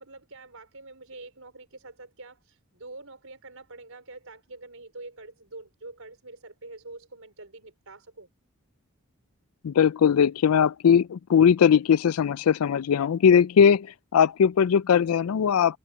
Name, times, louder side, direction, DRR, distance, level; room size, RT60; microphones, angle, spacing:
voice 1, 0.0-8.3, right 2 dB, 70° right, 5.0 m, -45 dB
voice 2, 9.6-15.8, left 7 dB, 85° left, 0.4 m, -20 dB
head